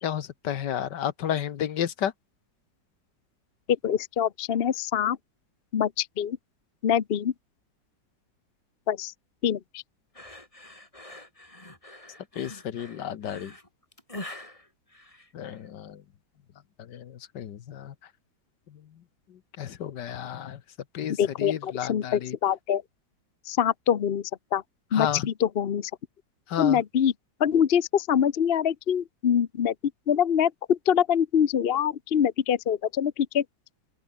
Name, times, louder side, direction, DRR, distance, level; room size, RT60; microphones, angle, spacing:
voice 1, 0.0-2.1 12.4-13.5 15.3-16.0 16.8-17.9 19.6-20.6 20.9-22.4 24.9-25.3 26.5-26.8, left 9 dB, 70° left, 1.7 m, -32 dB
voice 2, 3.8-5.2 5.7-6.4 6.8-7.3 8.9-9.1 9.4-9.8 21.2-22.8 23.5-24.6 24.9-25.9 26.6-27.1 27.4-29.7 30.1-33.4, left 8 dB, 45° left, 0.8 m, -24 dB
sound 1, 10.1-15.7, left 1 dB, 15° left, 3.6 m, -44 dB
open air
omnidirectional pair, 2.0 m